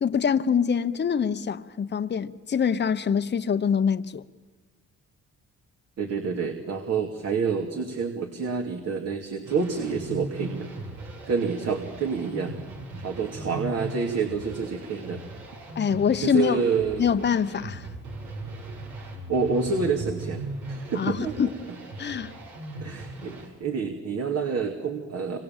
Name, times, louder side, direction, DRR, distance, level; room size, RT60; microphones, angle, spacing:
voice 1, 0.0-4.2 15.8-16.6 17.0-17.9 20.9-21.5 22.0-22.3, left 7 dB, 35° left, 1.0 m, -24 dB
voice 2, 6.0-10.7 11.3-12.5 13.0-15.2 16.2-17.1 19.3-20.4 20.7-21.4 22.8-25.4, right 5 dB, 55° right, 2.8 m, -28 dB
sound 1, 9.4-23.5, right 2 dB, 75° right, 7.9 m, -38 dB
28.5 x 26.0 x 7.4 m
cardioid pair, 90°, 30 cm